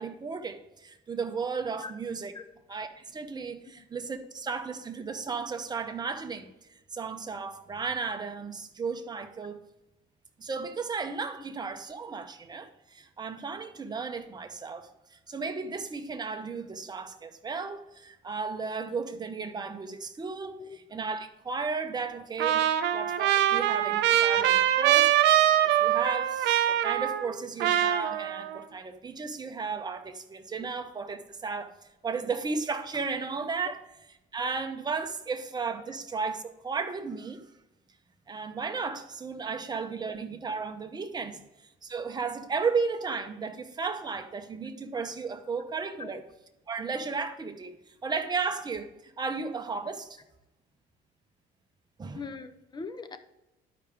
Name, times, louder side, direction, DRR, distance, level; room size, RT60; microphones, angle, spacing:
voice 1, 0.0-2.3 2.7-6.5 6.9-9.6 10.4-22.6 22.9-31.7 32.0-33.8 34.3-37.4 38.3-46.2 46.7-50.2 52.0-52.3, right 4 dB, 25° right, 0.9 m, -34 dB
Trumpet, 22.4-27.3 27.6-28.6, right 11 dB, 75° right, 0.7 m, -24 dB
voice 2, 52.1-53.2, left 4 dB, 25° left, 0.7 m, -41 dB
12.0 x 5.0 x 3.5 m
cardioid pair, 120°, 18 cm